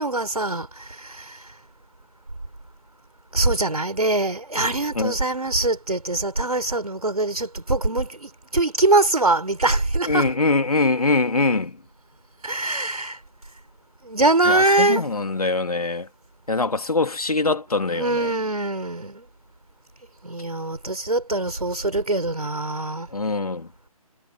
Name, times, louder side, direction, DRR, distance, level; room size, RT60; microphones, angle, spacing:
voice 1, 0.0-1.5 3.3-10.3 12.4-13.2 14.0-15.1 17.9-19.3 20.2-23.1, right 2 dB, 85° right, 4.3 m, -23 dB
voice 2, 10.1-11.7 14.5-16.1 16.5-18.3 23.1-23.7, left 3 dB, 80° left, 2.2 m, -23 dB
figure-of-eight pair, 150°, 19 cm